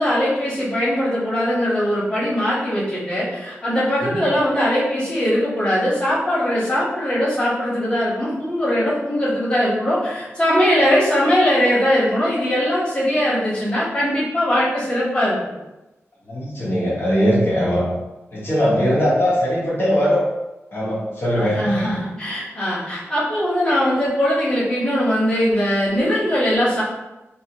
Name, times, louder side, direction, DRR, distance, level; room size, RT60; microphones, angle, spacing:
voice 1, 0.0-15.4 21.3-26.8, equal, 20° left, -10 dB, 1.2 m, -20 dB
voice 2, 16.3-17.9 18.3-20.2 20.7-21.9, equal, 50° left, -8 dB, 1.3 m, -20 dB
3.0 x 2.7 x 3.0 m, 1.0 s
wide cardioid pair, 125°, 5 cm